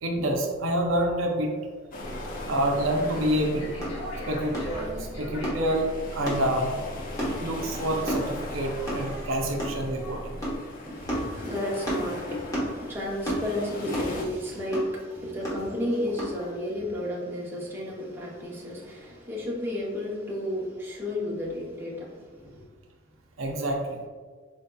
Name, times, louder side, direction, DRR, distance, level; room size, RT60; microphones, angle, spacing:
voice 1, 0.0-1.6 2.5-3.7 4.3-4.6 5.0-6.7 7.4-10.4 23.4-24.0, right 1 dB, 85° right, 0.5 m, -27 dB
sound 1, 1.9-14.2, left 1 dB, 45° left, 0.5 m, -41 dB
sound 2, 2.0-10.6, equal, 90° left, 1.0 m, -39 dB
sound 3, 3.8-16.5, equal, 20° left, 1.0 m, -34 dB
voice 2, 10.9-22.6, left 1 dB, 10° right, 0.7 m, -32 dB
4.4 x 2.7 x 2.2 m
head